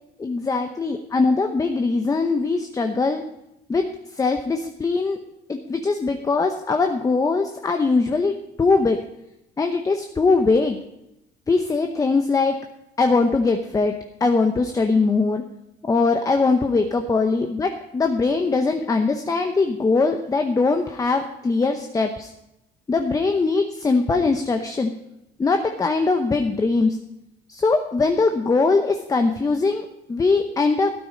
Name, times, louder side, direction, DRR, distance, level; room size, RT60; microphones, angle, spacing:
voice 1, 0.2-3.2 3.7-3.8 4.2-5.2 5.5-8.3 8.6-9.0 9.6-10.8 11.5-12.6 13.0-13.9 14.2-15.4 15.9-22.3 22.9-24.9 25.4-27.0 27.5-31.0, left 3 dB, 20° left, 6 dB, 0.8 m, -21 dB
12.5 x 9.3 x 5.3 m, 0.87 s
cardioid pair, 110°, 17 cm